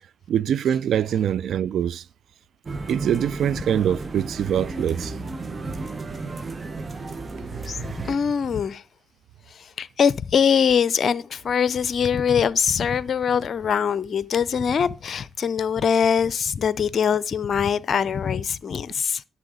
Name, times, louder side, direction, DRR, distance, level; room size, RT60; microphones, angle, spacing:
voice 1, 0.3-2.0 2.9-5.1 7.5-8.1, right 9 dB, 65° right, 0.4 m, -24 dB
sound 1, 2.7-8.2, right 3 dB, 40° right, 1.2 m, -33 dB
voice 2, 7.7-8.8 9.5-19.2, left 7 dB, 55° left, 0.5 m, -23 dB
11.0 x 7.0 x 4.9 m
hypercardioid pair, 45°, 0 cm